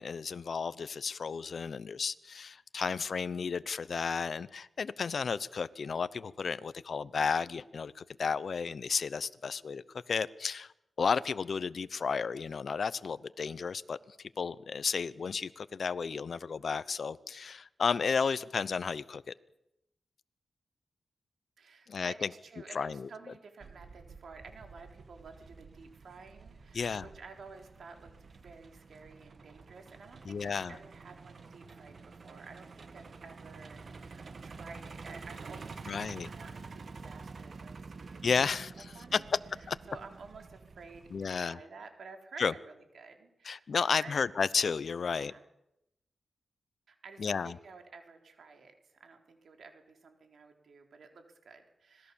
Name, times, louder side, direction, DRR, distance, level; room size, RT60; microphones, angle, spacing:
voice 1, 0.0-10.7 11.0-14.0 14.4-19.3 21.9-22.3 22.7-23.1 26.7-27.1 30.3-30.7 35.9-36.3 38.2-38.7 39.7-39.8 41.1-41.6 42.4-42.5 43.4-45.3 47.2-47.5, left 5 dB, 60° left, 16 dB, 0.8 m, -33 dB
voice 2, 21.6-38.5 38.8-39.2 39.6-44.2 45.1-45.4 46.9-52.1, right 4 dB, 75° right, 4 dB, 3.8 m, -52 dB
Truck, 23.6-41.4, right 4 dB, 55° right, 1.7 m, -49 dB
26.0 x 19.0 x 7.1 m, 0.84 s
cardioid pair, 85°, 0 cm